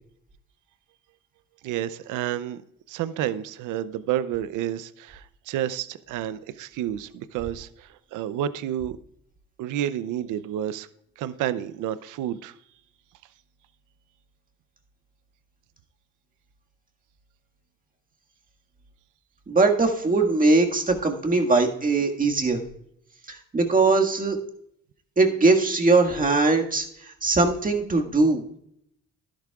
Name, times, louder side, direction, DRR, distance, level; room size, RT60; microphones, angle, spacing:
voice 1, 1.6-2.6 2.9-9.0 9.6-10.9 11.2-12.5, right 11 dB, 85° right, 0.6 m, -30 dB
voice 2, 19.5-22.6 23.3-24.4 25.2-28.6, right 3 dB, 25° right, 1.8 m, -21 dB
12.0 x 11.5 x 2.3 m
cardioid pair, 90°, 30 cm